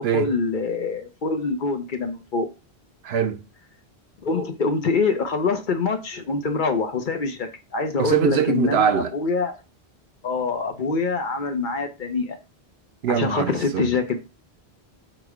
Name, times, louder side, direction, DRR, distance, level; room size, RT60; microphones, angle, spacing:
voice 1, 0.0-2.5 4.2-9.5 10.2-12.4 13.1-14.2, left 4 dB, 55° left, 0.8 m, -25 dB
voice 2, 3.0-3.4 8.0-9.1 13.0-13.9, right 8 dB, 75° right, 0.8 m, -22 dB
4.9 x 2.2 x 4.8 m
omnidirectional pair, 1.1 m